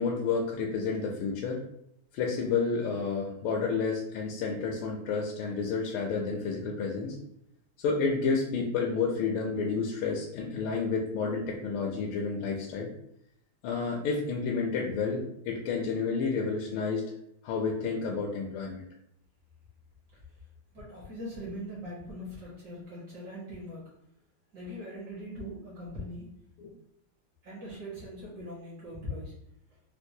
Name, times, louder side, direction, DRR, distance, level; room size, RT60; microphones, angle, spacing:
voice 1, 0.0-1.6 2.1-7.2 7.8-12.9 13.6-17.0 17.4-18.9 26.6-26.7, left 5 dB, 80° left, -1 dB, 1.4 m, -30 dB
voice 2, 20.7-23.9 24.5-26.3 27.4-29.3, equal, 60° right, -5 dB, 1.5 m, -41 dB
4.5 x 2.1 x 2.7 m, 0.73 s
omnidirectional pair, 2.3 m